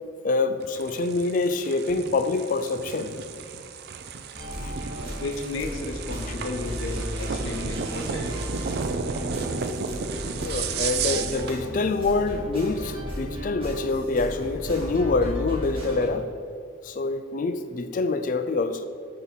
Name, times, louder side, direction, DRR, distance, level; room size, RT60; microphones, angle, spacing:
voice 1, 0.2-3.1 4.6-4.7 10.4-16.3 16.8-18.9, left 3 dB, 45° left, 10 dB, 0.3 m, -26 dB
sound 1, 0.6-11.6, right 6 dB, 55° right, 0.3 m, -33 dB
sound 2, 4.3-16.1, equal, 30° right, 1.5 m, -34 dB
voice 2, 4.8-8.3, left 2 dB, 90° left, 5 dB, 0.6 m, -34 dB
7.1 x 2.9 x 5.6 m, 2.2 s
head